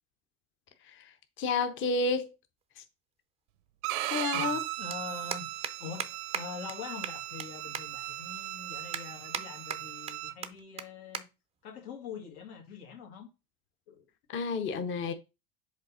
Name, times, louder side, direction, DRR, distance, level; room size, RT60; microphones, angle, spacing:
voice 1, 0.8-2.3 2.8-2.9 4.1-4.6 14.3-15.1, left 4 dB, 30° left, 0.6 m, -31 dB
sound 1, 2.6-2.7 4.1-4.2 4.4-4.6 4.9-5.0 5.3-5.7 6.0-6.1 6.3-6.4 6.7-6.8 7.0-7.5 7.7-7.8 8.3-8.4 8.9-9.4 9.7-10.1 10.4-10.5 10.8-10.9 11.1-11.2 11.6-11.8 12.6-12.8, right 7 dB, 15° right, 0.3 m, -36 dB
Bowed string instrument, 3.8-10.3, right 16 dB, 90° right, 0.6 m, -37 dB
voice 2, 4.3-5.5 5.8-6.1 6.3-11.3 11.6-13.3 13.9-14.0, left 6 dB, 80° left, 1.9 m, -44 dB
5.2 x 3.3 x 5.4 m
supercardioid pair, 125°, 42 cm